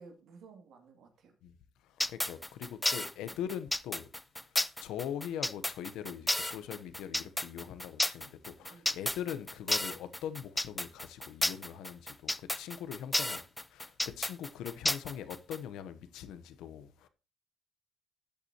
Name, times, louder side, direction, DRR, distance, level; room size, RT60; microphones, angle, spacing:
voice 1, 0.0-1.3 3.3-3.4 8.6-9.1, right 4 dB, 80° right, 2.4 m, -55 dB
sound 1, 2.0-15.6, left 1 dB, 10° left, 0.4 m, -32 dB
voice 2, 2.1-4.1 4.8-13.4 13.7-17.1, left 9 dB, 90° left, 0.8 m, -41 dB
13.5 x 8.2 x 2.9 m
cardioid pair, 90°, 0 cm